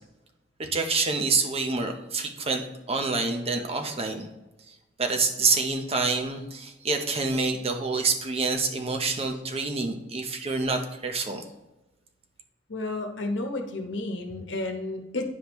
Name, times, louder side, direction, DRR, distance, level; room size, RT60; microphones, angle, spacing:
voice 1, 0.6-4.3 4.7-11.4, right 4 dB, 35° right, 5 dB, 0.8 m, -27 dB
voice 2, 12.7-15.2, left 2 dB, 75° left, 4 dB, 1.1 m, -31 dB
9.9 x 5.0 x 3.1 m, 1.0 s
head